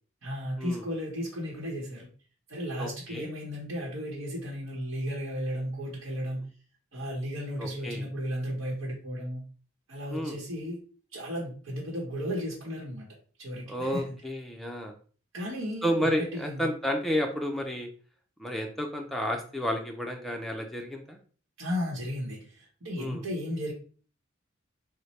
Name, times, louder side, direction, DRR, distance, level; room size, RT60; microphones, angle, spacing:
voice 1, 0.2-2.1 2.5-6.4 6.9-9.4 9.9-10.8 11.1-13.1 13.4-14.1 15.3-16.7 21.6-23.7, equal, 80° right, -4 dB, 0.9 m, -34 dB
voice 2, 2.8-3.3 7.6-8.1 10.1-10.4 13.7-14.9 15.8-17.9 18.4-21.2 23.0-23.2, equal, ahead, 1 dB, 0.4 m, -31 dB
3.1 x 2.1 x 4.1 m, 0.41 s
head